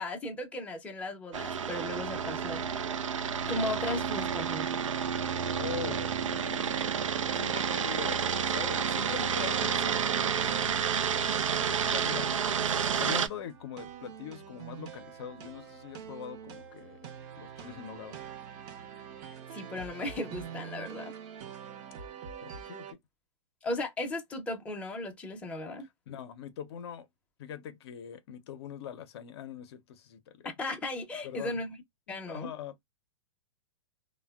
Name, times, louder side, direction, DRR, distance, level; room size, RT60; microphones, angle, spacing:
voice 1, 0.0-4.8 19.5-21.1 23.6-25.9 30.4-31.8 32.1-32.5, left 2 dB, 10° left, 0.6 m, -36 dB
sound 1, 1.3-13.3, right 7 dB, 90° right, 0.5 m, -30 dB
voice 2, 5.5-6.8 7.3-11.0 11.6-12.4 13.0-17.0 17.4-18.2 22.4-23.0 26.1-27.1 27.4-30.5 31.2-31.6 32.1-32.8, left 9 dB, 55° left, 0.6 m, -42 dB
sound 2, 10.1-22.9, right 8 dB, 45° right, 0.7 m, -45 dB
3.3 x 2.1 x 2.2 m
hypercardioid pair, 130°, 16 cm